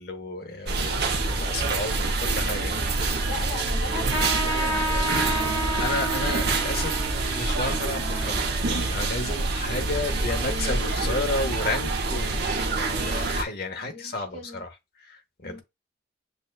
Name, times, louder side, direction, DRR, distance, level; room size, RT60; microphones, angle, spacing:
voice 1, 0.0-2.8 3.2-3.3 5.8-7.1 7.3-14.7 15.0-15.6, left 2 dB, 55° left, 0.9 m, -32 dB
sound 1, 0.7-13.4, right 3 dB, 60° right, 0.8 m, -26 dB
voice 2, 3.2-6.3 13.9-14.6 15.4-15.6, left 3 dB, 85° left, 1.7 m, -40 dB
Wind instrument woodwind instrument, 3.5-10.8, right 3 dB, 25° right, 0.8 m, -42 dB
Trumpet, 4.1-9.1, right 1 dB, 20° left, 1.1 m, -31 dB
6.7 x 2.3 x 2.4 m
head